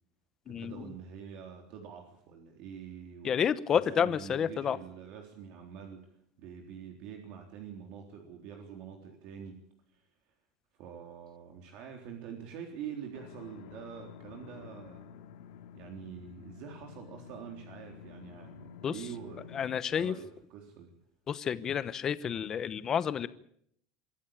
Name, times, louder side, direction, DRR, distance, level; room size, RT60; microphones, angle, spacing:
voice 1, 0.5-3.4 3.7-6.0 6.4-9.6 9.9-10.0 10.8-15.1 15.7-19.5 19.7-20.9, right 8 dB, 50° right, 3 dB, 3.7 m, -45 dB
voice 2, 3.2-4.8 18.8-18.9 19.5-20.1 21.3-23.3, left 8 dB, 25° left, 15 dB, 0.9 m, -30 dB
sound 1, 13.1-19.7, left 8 dB, 80° left, 2.5 m, -50 dB
24.5 x 14.0 x 8.8 m, 0.69 s
cardioid pair, 165°, 2 cm